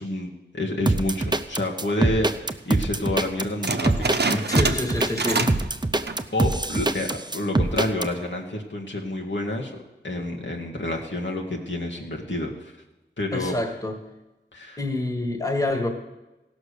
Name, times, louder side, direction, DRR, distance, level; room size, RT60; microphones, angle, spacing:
voice 1, 0.0-4.7 6.3-9.8 10.0-12.7 13.2-13.5 14.5-14.8, left 1 dB, 80° left, 0 dB, 1.8 m, -29 dB
sound 1, 0.9-8.1, right 2 dB, 25° right, 0.6 m, -23 dB
sound 2, 3.6-5.7 6.0-6.3 6.8-6.9 7.6-8.0, right 3 dB, 60° right, 0.8 m, -27 dB
voice 2, 4.5-5.5 13.3-14.0 14.8-15.9, left 2 dB, 20° left, 4 dB, 1.6 m, -27 dB
16.5 x 6.2 x 6.7 m, 1.0 s
wide cardioid pair, 55°, 19 cm